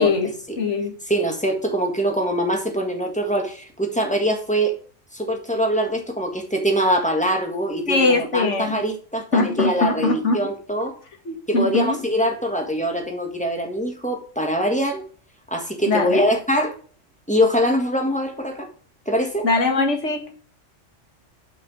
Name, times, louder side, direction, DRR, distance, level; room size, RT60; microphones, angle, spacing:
voice 1, 0.0-1.0 7.9-8.8 9.3-10.4 11.3-12.0 15.9-16.3 19.4-20.3, left 3 dB, 70° left, 2.0 m, -21 dB
voice 2, 1.1-4.8 5.1-11.0 11.5-15.1 15.5-16.7 17.3-18.7 19.0-19.5, equal, 5° left, 1.6 m, -23 dB
5.9 x 5.8 x 5.0 m
omnidirectional pair, 1.3 m